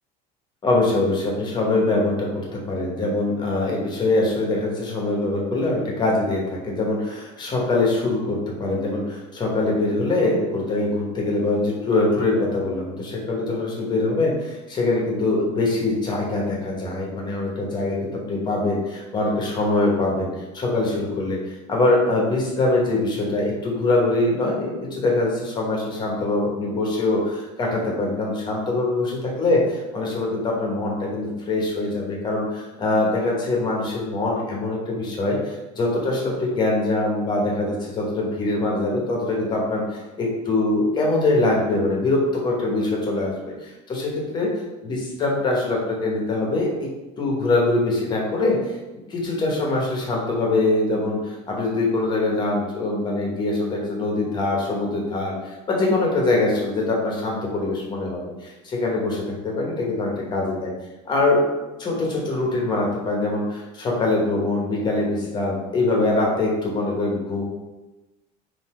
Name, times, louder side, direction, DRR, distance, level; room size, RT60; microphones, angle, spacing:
voice 1, 0.6-20.3 20.5-44.5 44.8-46.7 47.2-48.6 49.1-60.7 61.1-61.4 61.8-67.4, left 2 dB, 25° left, -2 dB, 1.1 m, -23 dB
3.9 x 2.8 x 4.3 m, 1.1 s
cardioid pair, 150°, 17 cm